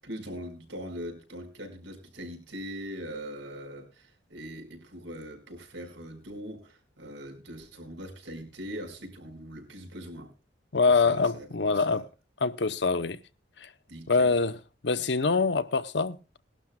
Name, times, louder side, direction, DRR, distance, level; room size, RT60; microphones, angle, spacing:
voice 1, 0.0-10.3 10.8-12.1 13.9-14.4, equal, 85° right, 5.1 m, -41 dB
voice 2, 10.7-12.0 12.4-13.2 13.6-13.7 14.1-14.6 14.8-16.2, left 4 dB, 70° left, 0.8 m, -24 dB
20.5 x 12.0 x 2.3 m
head